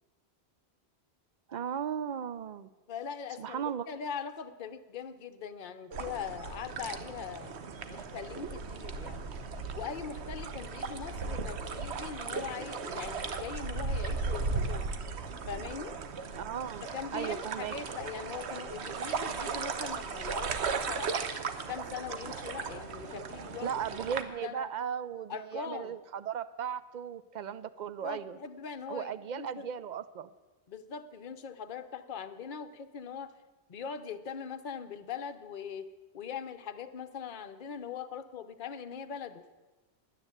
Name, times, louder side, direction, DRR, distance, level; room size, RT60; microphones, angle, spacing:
voice 1, 1.5-2.7 3.4-3.9 16.3-16.9 17.1-17.7 23.6-28.4 28.9-30.3, right 8 dB, 55° right, 15 dB, 0.6 m, -36 dB
voice 2, 2.9-7.5 7.9-9.4 9.7-14.9 15.5-16.0 16.8-21.2 21.7-23.8 24.4-24.7 25.3-25.9 28.0-29.7 30.7-33.3 33.7-35.9 36.1-39.4, left 7 dB, 50° left, 8 dB, 0.9 m, -41 dB
sound 1, 5.9-24.2, right 4 dB, 80° right, 1.2 m, -36 dB
11.0 x 9.9 x 7.9 m, 1.2 s
omnidirectional pair, 1.1 m